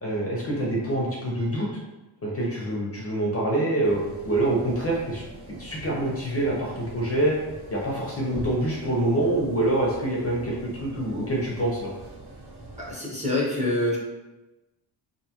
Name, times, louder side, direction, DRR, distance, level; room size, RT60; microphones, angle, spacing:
voice 1, 0.0-1.8 2.2-5.2 5.6-7.4 7.7-11.9, right 1 dB, 30° left, -4 dB, 0.5 m, -26 dB
sound 1, 3.8-12.9, right 1 dB, 55° right, 0.9 m, -43 dB
voice 2, 12.8-14.0, left 1 dB, 15° right, -5 dB, 0.6 m, -26 dB
2.6 x 2.2 x 2.8 m, 1.1 s
wide cardioid pair, 115°, 47 cm